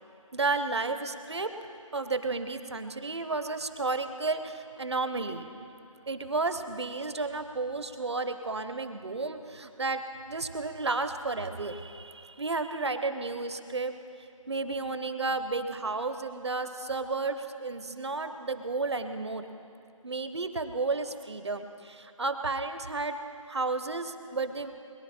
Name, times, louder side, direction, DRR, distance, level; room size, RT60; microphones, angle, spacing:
voice 1, 0.3-1.5 1.9-5.5 6.1-10.0 10.3-13.9 14.5-19.4 20.0-23.2 23.5-24.7, right 3 dB, 50° right, 9 dB, 0.9 m, -32 dB
22.0 x 11.0 x 4.3 m, 2.5 s
figure-of-eight pair, 175°, 17 cm